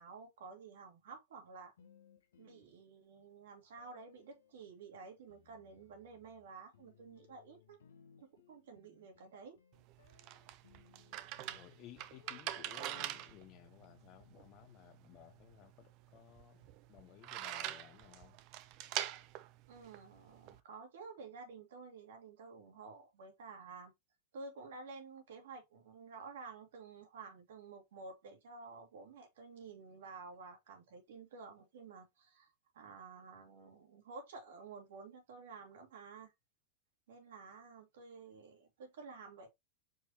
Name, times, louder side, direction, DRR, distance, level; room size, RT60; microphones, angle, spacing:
voice 1, 0.0-1.7 2.4-7.8 8.2-9.6 19.7-23.9 24.3-36.3 37.1-39.5, right 4 dB, 80° right, 1.9 m, -52 dB
sound 1, 1.8-3.2 3.8-16.0, left 7 dB, 90° left, 0.9 m, -66 dB
sound 2, 9.7-20.6, right 13 dB, 50° right, 0.5 m, -45 dB
voice 2, 11.5-18.4, left 14 dB, 45° left, 0.5 m, -58 dB
4.8 x 3.4 x 2.8 m
hypercardioid pair, 120°, 0 cm